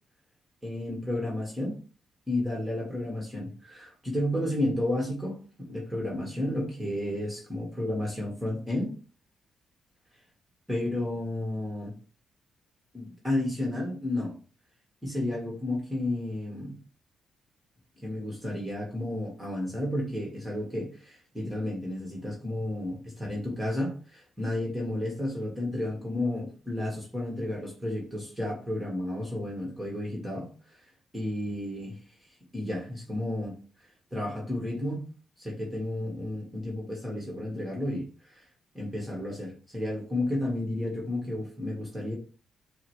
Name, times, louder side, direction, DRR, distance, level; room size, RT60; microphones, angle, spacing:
voice 1, 0.6-1.8 2.3-8.9 10.7-11.9 12.9-14.3 15.0-16.7 18.0-30.8 31.1-32.0 32.5-33.5 34.1-35.0 35.4-38.4 38.7-42.1, left 1 dB, 10° right, -3 dB, 1.4 m, -32 dB
5.5 x 2.1 x 3.1 m, 0.38 s
cardioid pair, 70°, 0 cm